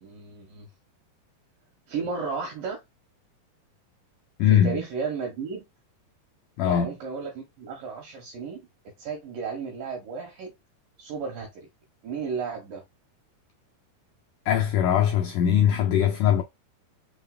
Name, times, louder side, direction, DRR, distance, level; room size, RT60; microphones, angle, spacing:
voice 1, 0.0-0.7 1.9-2.8 4.5-5.7 6.6-8.7 9.0-10.5 11.0-11.7 12.0-12.8, right 5 dB, 65° right, 2.7 m, -34 dB
voice 2, 4.4-4.8 6.6-6.9 14.5-16.4, left 9 dB, 90° left, 1.8 m, -21 dB
5.7 x 3.7 x 2.2 m
omnidirectional pair, 4.5 m